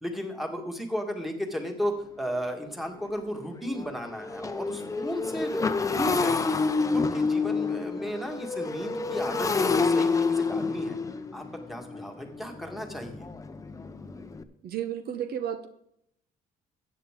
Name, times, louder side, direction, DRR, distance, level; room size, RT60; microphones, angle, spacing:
voice 1, 0.0-6.6 6.9-11.0 11.3-11.4 11.7-13.3, equal, ahead, 4 dB, 1.8 m, -34 dB
Motorcycle, 1.8-1.9 2.4-2.5 2.8-14.4, left 4 dB, 20° left, 0.7 m, -29 dB
voice 2, 14.6-15.7, right 10 dB, 65° right, 10 dB, 0.9 m, -32 dB
14.0 x 8.5 x 3.7 m, 0.73 s
cardioid pair, 110°, 17 cm